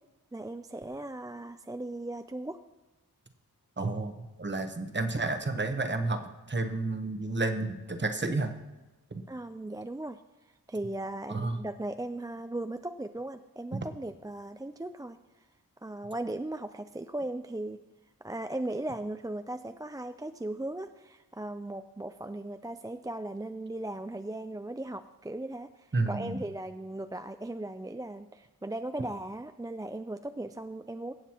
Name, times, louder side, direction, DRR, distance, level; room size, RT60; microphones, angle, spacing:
voice 1, 0.3-2.6 9.3-10.2 10.7-15.2 15.8-17.8 18.2-31.1, right 1 dB, 10° right, 8 dB, 0.3 m, -37 dB
voice 2, 3.8-8.5 9.1-9.2 11.3-11.6 13.7-13.9 25.9-26.4, right 2 dB, 30° right, 7 dB, 1.0 m, -31 dB
22.5 x 8.0 x 2.9 m, 1.1 s
wide cardioid pair, 80°, 34 cm